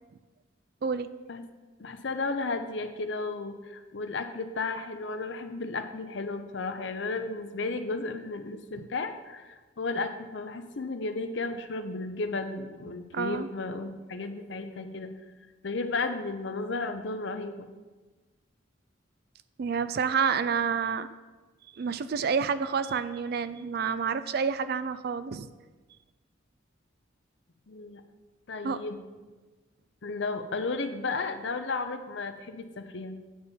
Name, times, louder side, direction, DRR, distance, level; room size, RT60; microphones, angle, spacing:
voice 1, 1.8-15.1 15.6-17.7 27.7-28.0 28.5-29.0 30.0-33.2, left 3 dB, 60° left, 8 dB, 0.7 m, -33 dB
voice 2, 13.1-13.5 19.6-21.1 21.8-25.5 28.6-28.8, right 6 dB, 50° right, 13 dB, 0.4 m, -29 dB
8.6 x 4.2 x 7.1 m, 1.3 s
head